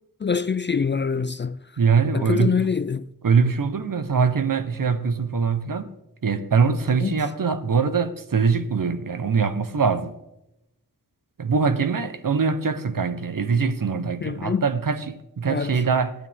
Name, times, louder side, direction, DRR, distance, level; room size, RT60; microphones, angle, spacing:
voice 1, 0.2-1.6 2.1-3.1 7.0-7.2 14.2-14.7 15.5-15.8, left 6 dB, 30° left, 0.4 m, -25 dB
voice 2, 1.8-2.6 3.2-5.9 6.2-10.1 11.4-16.1, right 5 dB, 60° right, 1.0 m, -23 dB
15.0 x 12.0 x 3.6 m
wide cardioid pair, 60°, 37 cm